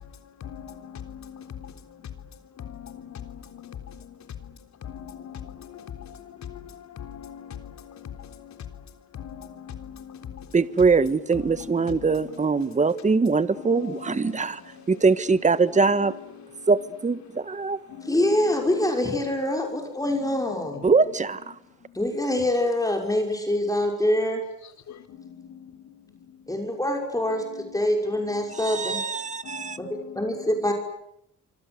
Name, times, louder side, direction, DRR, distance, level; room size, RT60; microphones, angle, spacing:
voice 1, 0.4-1.7 2.6-4.0 4.8-8.6 9.1-10.5 13.8-14.0 14.3-14.4 14.7-14.9 17.9-18.1 24.9-25.7 29.4-30.2, left 8 dB, 65° left, 3.8 m, -41 dB
voice 2, 10.5-14.6 14.9-16.1 16.7-17.8 20.8-21.5 28.6-29.8, right 4 dB, 25° right, 1.5 m, -22 dB
voice 3, 18.0-20.8 21.9-24.4 26.5-27.5 27.7-29.0 29.8-29.9 30.1-30.7, left 1 dB, 10° left, 6.0 m, -25 dB
26.5 x 25.5 x 8.1 m
cardioid pair, 90°, 30 cm